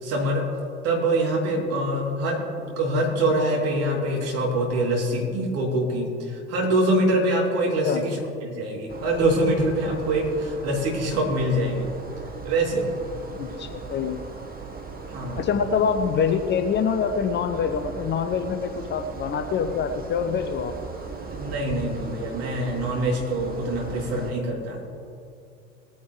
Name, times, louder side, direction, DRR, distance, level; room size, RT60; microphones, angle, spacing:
voice 1, 0.0-0.5 0.8-2.4 2.8-11.9 12.4-12.9 15.1-15.5 21.3-24.9, right 1 dB, 45° right, -1 dB, 3.2 m, -24 dB
sound 1, 8.9-24.3, right 4 dB, 25° right, 1.5 m, -38 dB
voice 2, 13.4-14.2 15.4-20.7, left 6 dB, 30° left, 8 dB, 0.7 m, -25 dB
19.5 x 9.6 x 3.3 m, 2.5 s
figure-of-eight pair, 65°, 34 cm